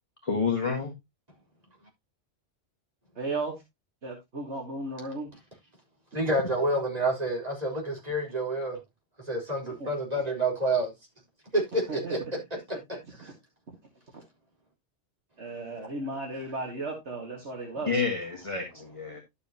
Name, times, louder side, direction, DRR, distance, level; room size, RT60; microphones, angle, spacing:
voice 1, 0.2-0.9 17.9-19.2, left 5 dB, 25° left, 1.7 m, -29 dB
voice 2, 3.2-3.6 4.0-5.3 9.8-9.9 11.9-12.1 15.4-18.0, right 2 dB, 65° right, 2.2 m, -35 dB
voice 3, 6.1-8.8 9.3-10.9 11.5-12.2 12.7-12.8 13.2-13.3, right 1 dB, 30° right, 4.4 m, -28 dB
11.5 x 6.9 x 2.9 m
omnidirectional pair, 1.2 m